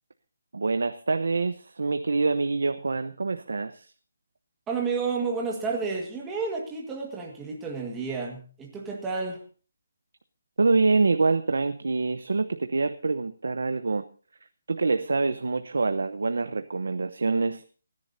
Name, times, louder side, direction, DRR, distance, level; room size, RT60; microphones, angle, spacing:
voice 1, 0.5-3.9 10.6-14.0 14.7-17.6, right 3 dB, 80° right, 9 dB, 0.9 m, -25 dB
voice 2, 4.7-9.4, right 4 dB, 5° right, -1 dB, 1.7 m, -31 dB
29.5 x 11.0 x 2.7 m, 0.39 s
hypercardioid pair, 180°, 0 cm